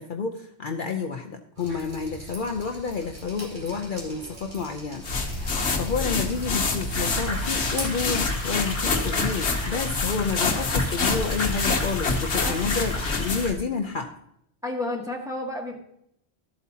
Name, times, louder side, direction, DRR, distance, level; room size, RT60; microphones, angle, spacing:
voice 1, 0.0-14.1, left 5 dB, 55° left, 4 dB, 0.8 m, -30 dB
Drip, 1.6-8.7, right 1 dB, 75° right, 3.2 m, -41 dB
sound 1, 5.0-13.6, left 3 dB, 80° left, 1.4 m, -27 dB
sound 2, 6.9-13.5, left 1 dB, 25° left, 1.5 m, -35 dB
voice 2, 14.6-15.8, left 2 dB, 5° right, -1 dB, 1.6 m, -31 dB
13.5 x 8.2 x 2.8 m, 0.74 s
omnidirectional pair, 1.1 m